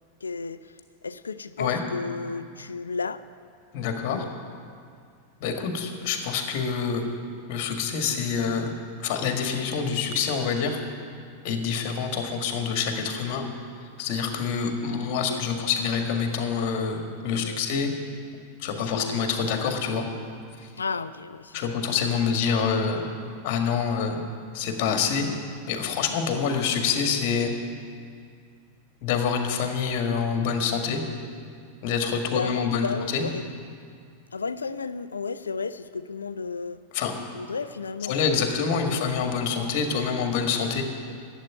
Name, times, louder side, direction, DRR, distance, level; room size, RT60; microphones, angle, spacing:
voice 1, 0.2-0.7 1.0-3.2 4.1-4.3 15.2-15.8 17.3-17.6 18.8-19.3 20.8-21.8 22.3-22.4 25.1-25.4 26.1-26.2 32.3-33.5 34.3-36.8 37.3-38.6 38.9-39.0, left 4 dB, 75° left, 14 dB, 0.5 m, -33 dB
voice 2, 3.7-4.2 5.4-7.1 7.5-8.7 9.0-10.8 11.4-13.4 14.0-17.9 18.6-20.0 21.5-23.1 23.4-24.2 24.5-25.3 25.7-27.5 29.0-31.0 31.8-33.3 36.9-37.1 38.0-40.8, left 6 dB, 45° left, 4 dB, 1.9 m, -26 dB
11.5 x 8.2 x 9.6 m, 2.2 s
figure-of-eight pair, 90°, 0 cm